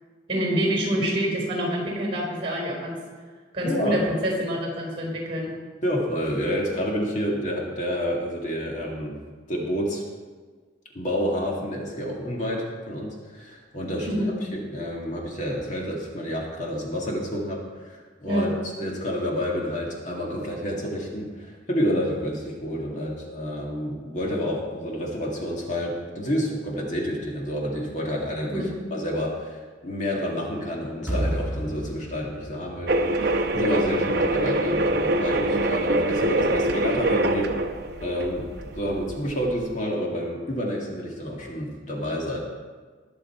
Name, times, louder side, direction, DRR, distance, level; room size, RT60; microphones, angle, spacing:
voice 1, 0.3-2.9 3.5-5.5 14.0-14.3 18.2-18.5 28.5-28.7, equal, 35° right, -1 dB, 4.4 m, -26 dB
voice 2, 3.6-4.0 5.8-9.2 9.5-10.0 10.9-14.3 14.7-18.5 18.8-28.6 28.9-37.5 38.0-42.4, equal, 45° left, -2 dB, 2.0 m, -29 dB
sound 1, 31.1-34.2, right 1 dB, 5° right, 4.2 m, -32 dB
sound 2, 32.9-39.8, right 1 dB, 60° right, 0.8 m, -24 dB
20.5 x 6.9 x 4.4 m, 1.5 s
head